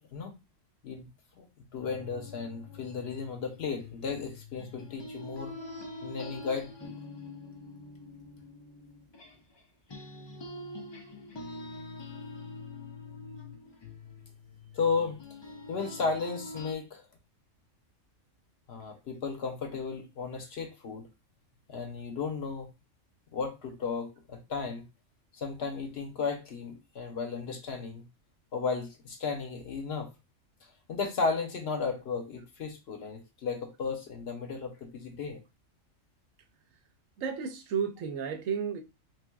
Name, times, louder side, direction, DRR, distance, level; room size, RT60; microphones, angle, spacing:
voice 1, 1.4-5.6 6.0-6.9 14.7-15.2 15.7-17.0 18.7-21.1 21.7-22.7 23.3-24.9 25.3-28.0 28.5-30.1 30.9-35.4, left 5 dB, 60° left, 0.9 m, -34 dB
sound 1, 1.8-9.6 9.9-16.7, left 2 dB, 40° left, 0.3 m, -45 dB
voice 2, 37.2-38.8, right 7 dB, 80° right, 1.0 m, -32 dB
3.5 x 3.2 x 2.3 m
omnidirectional pair, 1.4 m